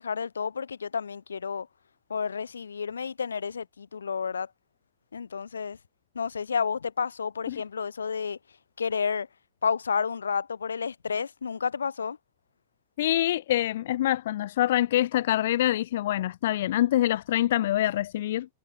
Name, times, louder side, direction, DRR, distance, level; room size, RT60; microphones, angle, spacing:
voice 1, 0.0-1.7 2.1-4.5 5.1-5.8 6.1-8.4 8.8-9.3 9.6-12.2, left 6 dB, 75° left, 3.0 m, -30 dB
voice 2, 13.0-18.5, left 13 dB, 60° left, 1.1 m, -25 dB
figure-of-eight pair, 90°, 0 cm